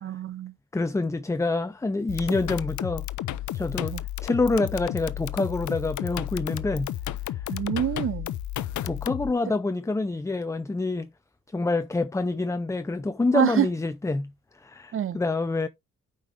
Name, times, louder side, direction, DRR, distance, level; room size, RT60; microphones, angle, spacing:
voice 1, 0.0-0.5 3.9-4.0 7.5-8.3 13.3-13.7 14.9-15.2, right 10 dB, 45° right, 0.7 m, -26 dB
voice 2, 0.7-3.0 3.5-4.0 4.2-6.9 7.3-7.4 8.8-11.1 11.5-14.3 14.6-15.7, left 3 dB, 10° left, 0.6 m, -27 dB
sound 1, 2.1-9.3, left 13 dB, 70° left, 0.7 m, -32 dB
8.7 x 5.4 x 3.3 m
cardioid pair, 90°, 30 cm